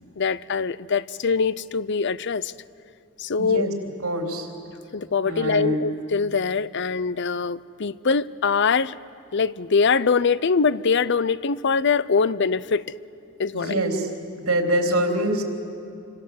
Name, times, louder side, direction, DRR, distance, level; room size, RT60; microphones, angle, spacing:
voice 1, 0.2-2.5 3.2-3.7 4.9-9.0 9.3-12.9 13.4-13.8, left 5 dB, 55° left, 18 dB, 0.6 m, -23 dB
voice 2, 3.4-3.7 4.0-4.5 5.2-5.9 13.5-14.1 14.5-15.4, right 1 dB, 85° right, 2 dB, 3.8 m, -24 dB
28.5 x 26.0 x 8.0 m, 2.6 s
head